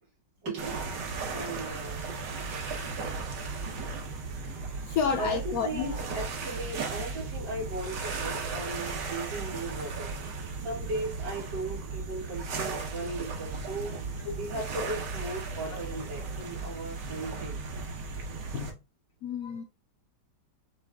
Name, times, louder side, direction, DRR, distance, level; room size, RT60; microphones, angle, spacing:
voice 1, 0.4-2.1 4.9-10.1 10.6-13.9 14.3-17.6, right 2 dB, 60° right, 2.8 m, -37 dB
sound 1, 0.6-18.7, right 4 dB, 80° right, 1.7 m, -36 dB
voice 2, 4.6-5.9 14.3-14.4 15.7-15.8 18.5-18.7 19.2-19.6, left 6 dB, 65° left, 0.9 m, -31 dB
5.9 x 2.4 x 3.5 m
omnidirectional pair, 1.9 m